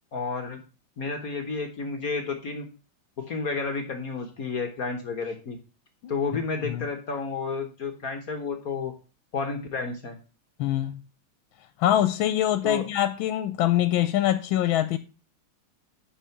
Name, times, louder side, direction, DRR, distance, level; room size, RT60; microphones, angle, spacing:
voice 1, 0.1-0.6 1.0-2.6 3.2-5.6 6.1-8.9 9.3-10.2 12.6-12.8, left 4 dB, 50° left, 1.4 m, -31 dB
voice 2, 10.6-11.0 11.8-15.0, left 12 dB, 85° left, 1.5 m, -24 dB
10.0 x 5.0 x 5.8 m
omnidirectional pair, 2.2 m